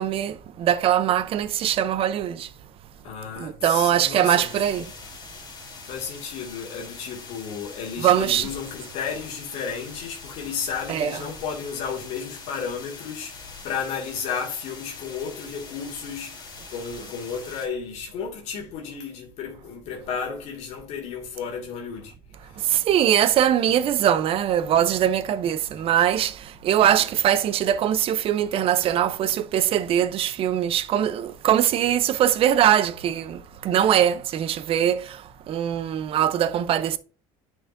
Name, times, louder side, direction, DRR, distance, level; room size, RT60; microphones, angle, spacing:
voice 1, 0.0-2.5 3.4-4.9 8.0-8.5 10.9-11.2 22.6-35.2 35.5-37.0, right 10 dB, 50° right, 0.6 m, -22 dB
voice 2, 3.0-4.5 5.9-13.3 13.6-16.4 16.7-22.1, left 6 dB, 65° left, 2.0 m, -33 dB
sound 1, 4.2-17.7, left 4 dB, 35° left, 3.0 m, -43 dB
10.0 x 4.9 x 2.6 m
cardioid pair, 115°, 12 cm